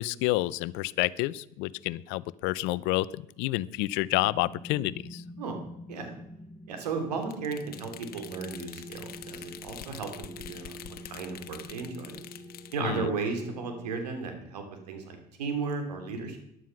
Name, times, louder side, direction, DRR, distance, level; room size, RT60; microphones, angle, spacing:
voice 1, 0.0-5.2 12.8-13.1, left 18 dB, 70° left, 20 dB, 0.6 m, -29 dB
sound 1, 4.1-14.0, left 1 dB, 10° right, 1.1 m, -47 dB
voice 2, 6.7-10.8 11.0-12.2 12.7-16.4, right 4 dB, 90° right, 4 dB, 3.1 m, -35 dB
sound 2, 7.2-12.8, left 11 dB, 50° left, 1.2 m, -46 dB
14.5 x 11.0 x 5.8 m, 0.80 s
hypercardioid pair, 75°, 20 cm